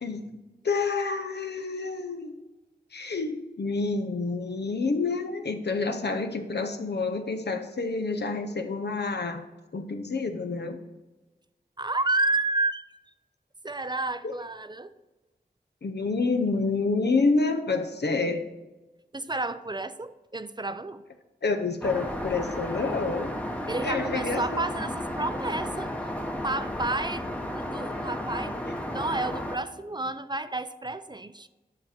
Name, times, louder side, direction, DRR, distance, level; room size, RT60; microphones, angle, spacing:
voice 1, 0.0-0.3 0.6-2.3 2.9-9.4 9.7-10.8 14.2-14.3 15.8-18.5 21.4-23.3 23.8-24.6, left 3 dB, 80° left, 7 dB, 0.8 m, -28 dB
voice 2, 11.8-12.8 13.6-14.9 19.1-21.0 23.7-25.9 26.4-28.6 28.8-31.5, right 2 dB, 25° right, 12 dB, 0.4 m, -31 dB
Aircraft, 21.8-29.6, left 1 dB, 10° left, 0.8 m, -33 dB
9.7 x 5.0 x 4.3 m, 1.1 s
wide cardioid pair, 70°, 17 cm